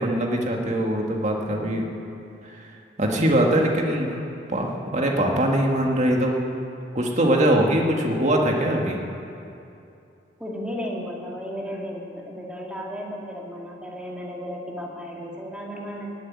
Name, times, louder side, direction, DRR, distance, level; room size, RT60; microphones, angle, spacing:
voice 1, 0.0-1.9 2.4-2.7 3.0-4.1 4.5-6.4 7.0-9.0, right 1 dB, 40° right, 1 dB, 1.8 m, -22 dB
voice 2, 10.4-16.1, equal, 5° right, -3 dB, 2.1 m, -34 dB
16.5 x 8.2 x 9.8 m, 2.6 s
head